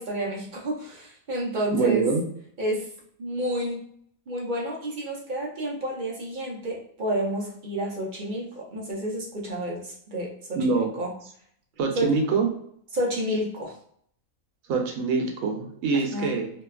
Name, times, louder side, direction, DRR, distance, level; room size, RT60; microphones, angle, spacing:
voice 1, 0.0-2.1 2.6-2.9 3.2-3.8 4.3-10.6 11.0-11.1 12.0-12.1 12.9-13.8 16.1-16.3, right 1 dB, 50° right, -2 dB, 0.6 m, -30 dB
voice 2, 1.7-2.2 10.5-10.9 11.8-12.5 14.7-16.5, right 4 dB, 85° right, 2 dB, 1.0 m, -24 dB
2.7 x 2.2 x 2.3 m, 0.65 s
omnidirectional pair, 1.4 m